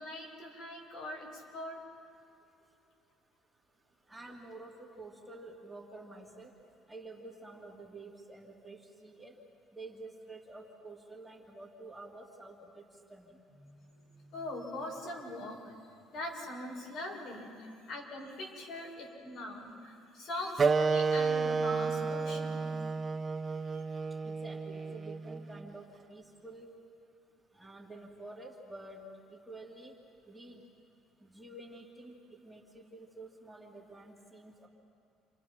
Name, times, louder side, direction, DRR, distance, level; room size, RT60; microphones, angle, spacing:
voice 1, 0.0-1.8 4.2-4.3 13.6-22.7 23.7-23.8, left 1 dB, 60° left, -1 dB, 6.9 m, -42 dB
voice 2, 4.1-6.5 6.9-9.3 9.7-12.8 13.1-13.4 24.2-26.7 27.5-29.0 29.3-29.9 30.3-30.6 31.2-32.2 32.4-34.7, right 2 dB, 10° right, -2 dB, 2.8 m, -49 dB
Wind instrument woodwind instrument, 20.6-25.7, right 4 dB, 25° right, 0.9 m, -31 dB
29.5 x 27.0 x 6.0 m, 2.5 s
cardioid pair, 130°, 0 cm